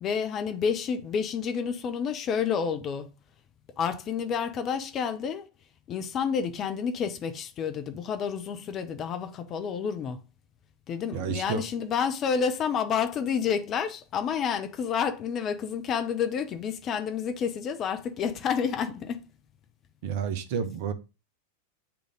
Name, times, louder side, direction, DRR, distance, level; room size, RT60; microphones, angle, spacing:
voice 1, 0.0-3.2 3.8-5.5 5.9-10.2 10.9-19.3, left 7 dB, 30° left, 0.8 m, -29 dB
voice 2, 11.1-11.6 20.0-20.9, right 7 dB, 50° right, 1.0 m, -30 dB
8.6 x 3.4 x 3.6 m
figure-of-eight pair, 90°, 0 cm